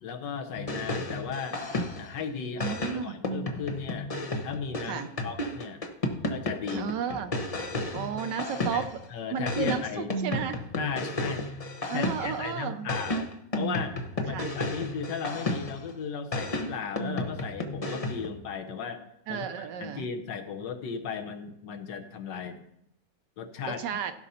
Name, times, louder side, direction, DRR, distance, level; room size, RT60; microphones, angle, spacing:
voice 1, 0.0-1.7 2.0-4.1 4.4-5.8 6.3-6.9 8.7-10.1 10.7-11.5 11.9-13.3 13.5-14.0 14.3-19.0 19.3-22.6 23.4-23.8, left 6 dB, 70° left, 6 dB, 1.5 m, -36 dB
sound 1, 0.5-2.2 2.6-9.0 9.5-12.5 12.9-15.9 16.3-18.4, left 1 dB, 45° left, 0.4 m, -32 dB
voice 2, 2.6-3.2 4.9-5.1 6.7-7.3 7.9-8.9 9.3-10.6 11.9-12.9 14.3-14.5 19.3-20.1 23.6-24.1, right 7 dB, 70° right, 9 dB, 1.2 m, -33 dB
15.5 x 5.4 x 4.2 m, 0.77 s
omnidirectional pair, 2.1 m